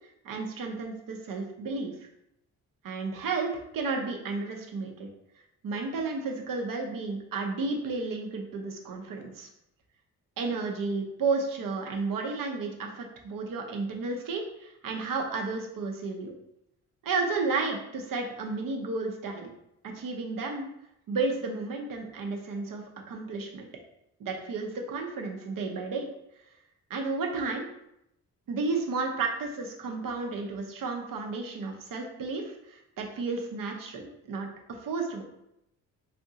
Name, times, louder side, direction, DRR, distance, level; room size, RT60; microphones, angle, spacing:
voice 1, 0.2-1.9 2.8-5.1 5.6-9.5 10.4-16.3 17.0-19.5 19.8-20.7 21.1-23.7 24.2-26.1 26.9-27.7 28.5-35.2, right 3 dB, 60° right, 2 dB, 0.8 m, -32 dB
2.8 x 2.5 x 3.6 m, 0.81 s
supercardioid pair, 55°, 38 cm